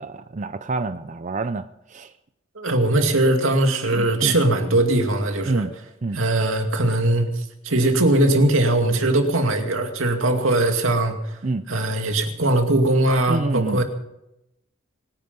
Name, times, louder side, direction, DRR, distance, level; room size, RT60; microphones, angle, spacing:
voice 1, 0.0-2.1 3.9-4.3 5.5-5.7 6.0-6.2 11.4-11.6 13.3-13.8, right 3 dB, 35° right, 11 dB, 0.5 m, -27 dB
voice 2, 2.6-5.6 6.1-7.3 7.6-11.1 11.7-13.8, right 1 dB, 80° right, 4 dB, 2.4 m, -20 dB
25.5 x 10.0 x 5.4 m, 0.88 s
head